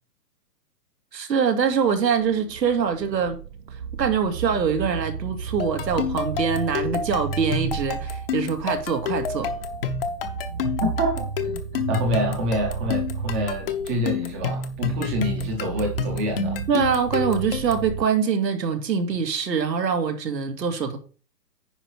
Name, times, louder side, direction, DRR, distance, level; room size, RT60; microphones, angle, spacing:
voice 1, 1.1-3.4 4.0-9.5 16.7-21.0, right 6 dB, 90° right, 2.6 m, -24 dB
sound 1, 1.7-18.1, right 6 dB, 45° right, 0.6 m, -34 dB
sound 2, 5.6-17.9, left 6 dB, 35° left, 0.9 m, -30 dB
voice 2, 10.6-16.6, equal, 10° right, 0.7 m, -27 dB
9.9 x 5.2 x 4.7 m
hypercardioid pair, 170°, 49 cm